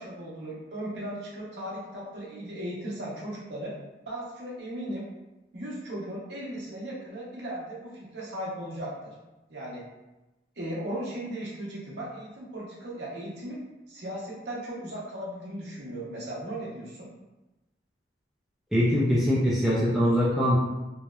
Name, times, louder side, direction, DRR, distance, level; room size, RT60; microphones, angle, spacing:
voice 1, 0.0-3.7 4.1-5.0 5.5-9.1 9.5-9.8 10.6-13.6 13.9-17.1, right 1 dB, 65° right, -5 dB, 0.7 m, -37 dB
voice 2, 18.7-20.6, equal, ahead, -7 dB, 0.3 m, -23 dB
2.8 x 2.0 x 2.3 m, 1.0 s
head